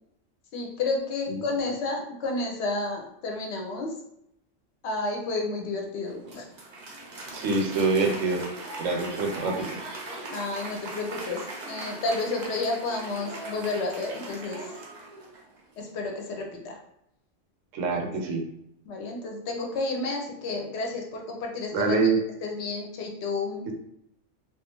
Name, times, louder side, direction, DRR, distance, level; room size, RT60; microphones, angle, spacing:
voice 1, 0.5-3.9 4.8-6.4 10.3-14.7 15.8-16.8 17.9-18.0 18.9-21.9 22.4-23.7, left 3 dB, 65° left, 1 dB, 0.8 m, -31 dB
Applause, 6.0-15.6, right 2 dB, 55° right, 0.5 m, -39 dB
voice 2, 7.3-8.4 8.8-9.7 17.7-18.4 21.7-22.2 23.7-23.8, right 3 dB, 80° right, 3 dB, 0.9 m, -25 dB
2.4 x 2.3 x 2.9 m, 0.77 s
omnidirectional pair, 1.3 m